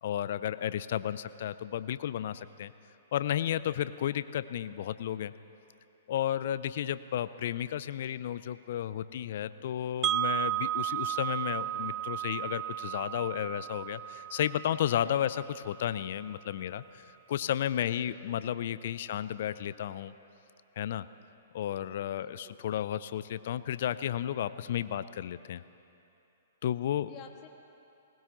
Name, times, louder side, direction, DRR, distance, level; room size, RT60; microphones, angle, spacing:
voice 1, 0.0-2.7 3.1-5.3 6.1-20.1 20.8-21.0 21.5-25.6 26.6-27.1, left 10 dB, 55° left, 15 dB, 0.4 m, -33 dB
Wind chime, 10.0-16.0, right 12 dB, 20° right, 0.4 m, -34 dB
voice 2, 17.9-18.4 19.0-19.2 22.1-22.6 27.0-27.5, left 7 dB, 35° left, 3 dB, 1.6 m, -52 dB
20.0 x 19.5 x 3.0 m, 2.8 s
figure-of-eight pair, 120°, 0 cm